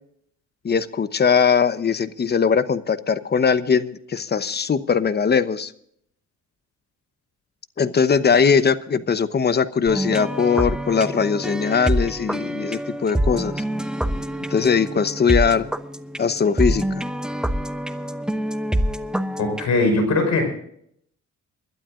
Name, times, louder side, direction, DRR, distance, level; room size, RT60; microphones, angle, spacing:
voice 1, 0.6-5.7 7.8-13.6 14.5-15.7 16.2-16.8, left 6 dB, 35° left, 14 dB, 0.9 m, -20 dB
sound 1, 9.9-19.7, right 1 dB, 5° right, 0.8 m, -26 dB
voice 2, 19.4-20.5, left 2 dB, 65° left, 5 dB, 5.6 m, -20 dB
28.5 x 12.0 x 2.5 m, 0.68 s
cardioid pair, 90°, 30 cm